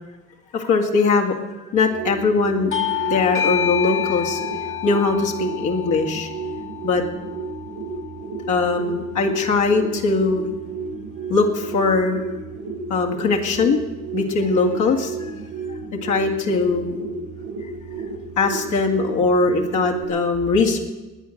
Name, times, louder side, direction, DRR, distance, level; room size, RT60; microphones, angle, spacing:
voice 1, 0.5-1.4 1.7-2.7 3.1-4.5 4.8-6.3 6.8-7.0 8.5-10.4 11.3-12.3 12.9-13.8 14.1-15.3 16.0-17.0 18.4-20.8, left 4 dB, 80° left, 1 dB, 2.2 m, -20 dB
sound 1, 1.7-20.1, right 4 dB, 75° right, 1.7 m, -33 dB
Bell / Doorbell, 2.7-7.8, left 11 dB, 45° left, 1.1 m, -28 dB
20.5 x 8.8 x 6.5 m, 1.1 s
cardioid pair, 90°, 30 cm